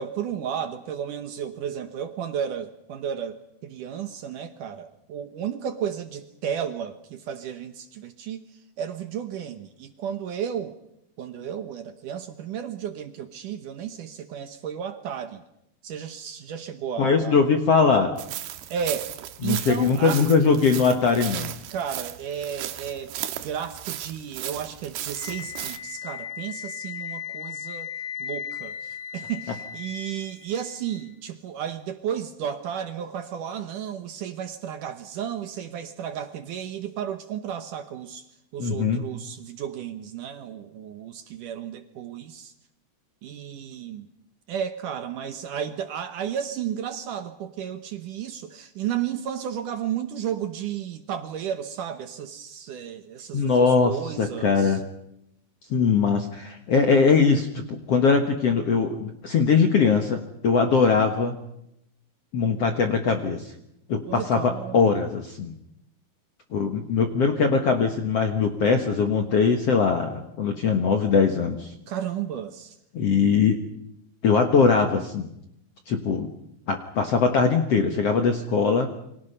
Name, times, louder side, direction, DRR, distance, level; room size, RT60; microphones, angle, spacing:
voice 1, 0.0-3.4 3.6-8.4 8.8-10.8 11.2-15.4 15.8-17.4 18.7-20.2 21.7-27.9 28.2-38.2 38.5-42.5 43.2-44.1 44.5-54.8 64.1-64.9 71.9-72.8, right 9 dB, 65° right, 9 dB, 2.3 m, -33 dB
voice 2, 17.0-18.1 19.4-21.6 38.6-39.0 53.3-54.8 55.7-61.3 62.3-63.5 63.9-65.5 66.5-71.7 72.9-73.6 74.2-75.3 75.9-76.3 76.7-78.9, left 5 dB, 55° left, 5 dB, 1.8 m, -21 dB
sound 1, 18.2-25.8, right 12 dB, 80° right, 3.2 m, -36 dB
Wind instrument woodwind instrument, 25.1-31.1, left 8 dB, 15° left, 2.0 m, -37 dB
29.0 x 24.0 x 5.6 m, 0.80 s
omnidirectional pair, 4.6 m